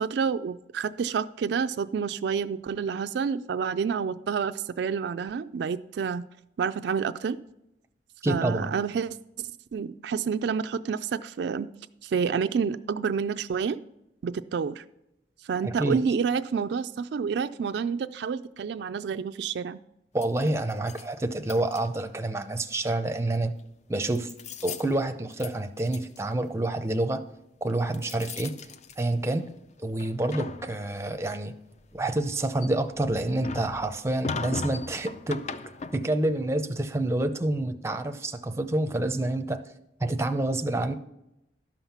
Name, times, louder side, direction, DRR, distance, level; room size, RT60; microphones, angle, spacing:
voice 1, 0.0-6.3 6.6-7.4 8.3-11.7 12.0-13.8 14.2-14.8 15.4-19.8, right 6 dB, 65° right, 10 dB, 0.3 m, -29 dB
voice 2, 8.2-8.7 15.6-16.0 20.1-23.5 23.9-24.3 24.6-27.2 27.6-28.5 29.0-29.5 29.8-31.5 31.9-35.4 35.9-39.6 40.0-40.9, right 2 dB, 15° right, 8 dB, 0.6 m, -28 dB
sound 1, 20.2-21.1 21.5-22.2 23.4-23.6 24.1-24.9 25.3-25.5 25.8-26.2 27.7-29.5 29.9-31.1 31.7-36.3, left 4 dB, 40° left, 0.4 m, -38 dB
12.0 x 5.7 x 5.8 m, 0.85 s
head